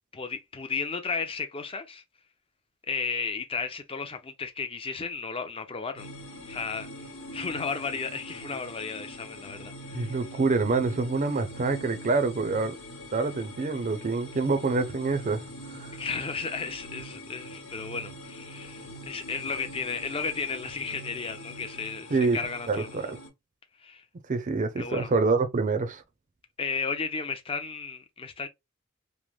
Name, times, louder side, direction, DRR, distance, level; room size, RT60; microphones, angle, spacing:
voice 1, 0.1-2.0 2.9-6.1 6.5-10.2 16.0-23.0 23.8-24.0 24.8-25.1 26.6-28.5, left 5 dB, 25° left, 0.5 m, -34 dB
sound 1, 6.0-23.3, equal, 65° left, 1.1 m, -43 dB
voice 2, 9.9-12.8 13.1-15.4 15.7-15.9 22.1-22.4 22.7-23.2 24.3-26.0, right 3 dB, 40° right, 0.5 m, -26 dB
3.2 x 2.0 x 2.3 m
head